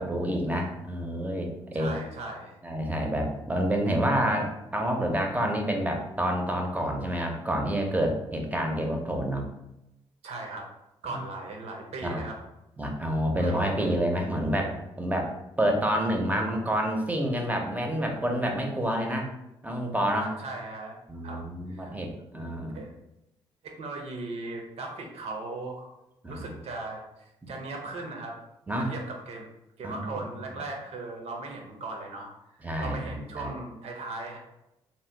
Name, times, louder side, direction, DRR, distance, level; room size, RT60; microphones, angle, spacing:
voice 1, 0.0-1.5 1.7-2.0 2.6-9.5 11.1-11.2 12.0-12.2 12.8-15.3 15.6-19.3 19.6-20.3 21.1-22.8 26.2-26.5 27.4-27.5 28.7-28.9 29.8-30.2 32.6-33.5, equal, 15° right, 2 dB, 0.7 m, -28 dB
voice 2, 1.7-2.6 10.2-10.7 11.0-12.4 13.4-13.9 20.2-21.0 21.2-21.4 21.7-21.9 22.7-22.9 23.6-25.9 26.3-27.0 27.5-28.4 28.7-29.5 29.8-32.3 32.8-34.4, right 2 dB, 70° right, 1 dB, 0.7 m, -38 dB
2.8 x 2.1 x 3.4 m, 0.89 s
supercardioid pair, 65°, 11 cm